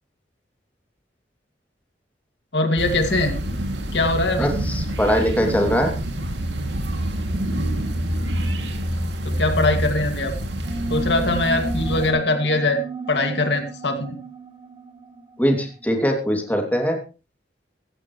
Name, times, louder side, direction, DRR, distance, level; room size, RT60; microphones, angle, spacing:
voice 1, 2.5-3.3 3.9-4.5 9.2-10.3 10.9-12.8 13.1-14.2, left 2 dB, 70° left, 5 dB, 2.3 m, -22 dB
sound 1, 2.8-12.1, right 1 dB, 80° right, 2.6 m, -27 dB
voice 2, 4.4-5.9 15.4-17.0, equal, 10° left, 2 dB, 2.7 m, -21 dB
sound 2, 10.6-15.8, right 2 dB, 25° right, 1.4 m, -33 dB
16.5 x 15.0 x 3.2 m, 0.33 s
head